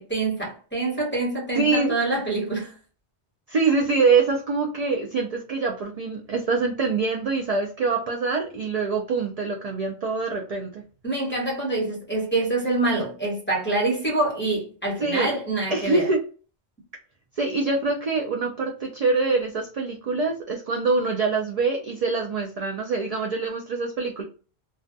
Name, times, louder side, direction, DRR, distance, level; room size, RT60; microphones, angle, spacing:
voice 1, 0.0-2.7 11.0-16.1, right 2 dB, 10° left, 1.0 m, -26 dB
voice 2, 1.6-1.9 3.5-10.8 15.0-15.3 15.7-16.2 17.4-24.2, right 4 dB, 60° right, 0.4 m, -24 dB
2.4 x 2.1 x 2.6 m
omnidirectional pair, 1.1 m